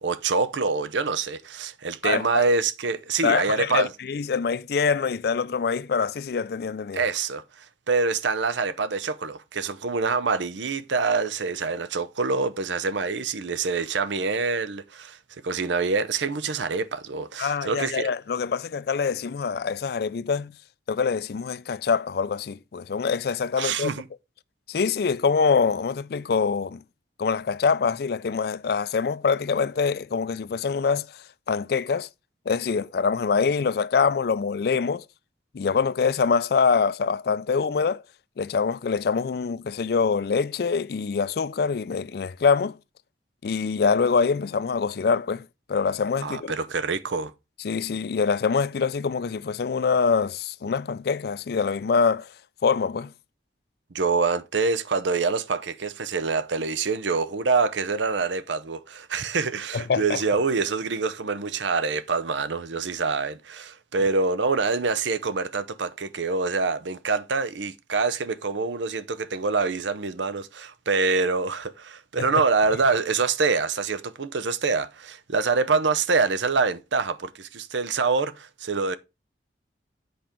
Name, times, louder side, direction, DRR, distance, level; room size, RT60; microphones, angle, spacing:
voice 1, 0.0-3.9 6.9-15.2 15.4-18.1 23.6-24.0 46.2-47.3 53.9-79.0, right 4 dB, 90° right, 0.7 m, -25 dB
voice 2, 3.2-7.0 17.4-20.5 20.9-23.9 24.7-26.8 27.2-31.1 31.5-32.1 32.5-35.0 35.5-38.0 38.4-42.8 43.4-46.5 47.6-52.3 52.6-53.1 59.7-60.2 72.2-72.3, left 5 dB, 55° left, 0.4 m, -24 dB
7.9 x 5.1 x 4.4 m
head